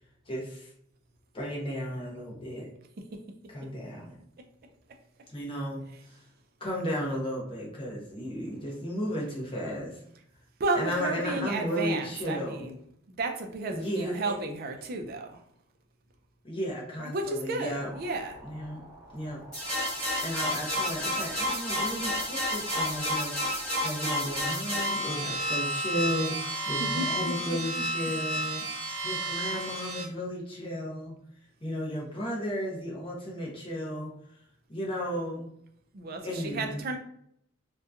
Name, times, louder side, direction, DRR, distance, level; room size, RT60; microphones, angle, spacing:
voice 1, 0.3-0.7 1.3-2.7 3.5-4.2 5.3-6.2 6.6-10.0 10.8-12.6 13.7-14.4 16.4-17.9 18.4-18.8 19.1-19.4 20.2-28.6 29.0-31.2 31.6-34.1 34.7-35.5 36.2-37.0, equal, 25° left, -2 dB, 0.7 m, -34 dB
voice 2, 10.6-12.8 13.2-15.4 17.0-18.4 20.0-20.2 26.8-27.8 35.9-37.0, right 2 dB, 50° right, 4 dB, 0.4 m, -33 dB
sound 1, 17.9-24.5, equal, 25° right, 1.0 m, -49 dB
sound 2, 19.5-30.0, equal, 5° left, 1.4 m, -31 dB
2.8 x 2.2 x 2.4 m, 0.71 s
head